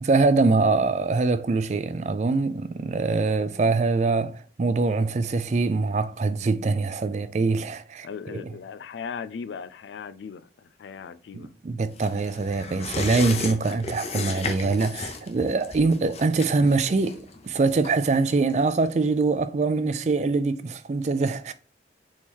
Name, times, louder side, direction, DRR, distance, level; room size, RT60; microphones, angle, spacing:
voice 1, 0.0-8.4 11.3-21.5, right 3 dB, 40° right, 0.4 m, -24 dB
voice 2, 8.0-11.5, left 6 dB, 85° left, 0.4 m, -38 dB
sound 1, 12.0-19.0 19.3-19.4, left 4 dB, 35° left, 0.6 m, -35 dB
3.6 x 3.0 x 4.3 m
head